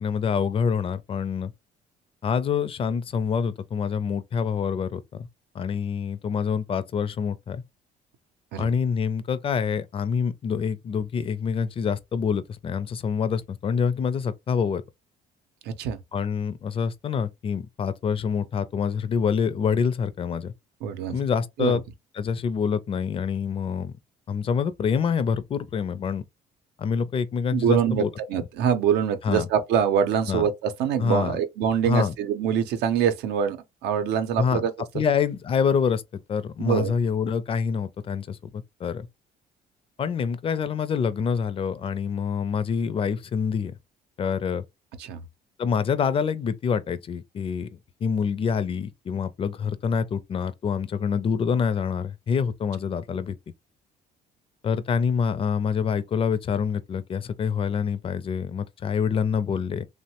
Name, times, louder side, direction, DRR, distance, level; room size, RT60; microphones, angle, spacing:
voice 1, 0.0-1.5 2.2-5.3 5.5-7.6 8.6-14.8 16.1-20.5 21.1-21.8 22.1-24.0 24.3-26.2 26.8-28.1 29.2-29.5 30.3-30.5 31.0-31.4 31.9-32.1 34.4-34.6 34.9-36.0 36.3-39.1 40.0-43.8 44.2-44.6 45.6-53.4 54.6-59.9, left 6 dB, 35° left, 0.4 m, -26 dB
voice 2, 15.6-16.0 20.8-21.2 21.6-21.7 27.5-35.0 36.6-36.9 45.0-45.2, right 8 dB, 80° right, 0.6 m, -24 dB
3.1 x 2.1 x 2.8 m
cardioid pair, 110°, 17 cm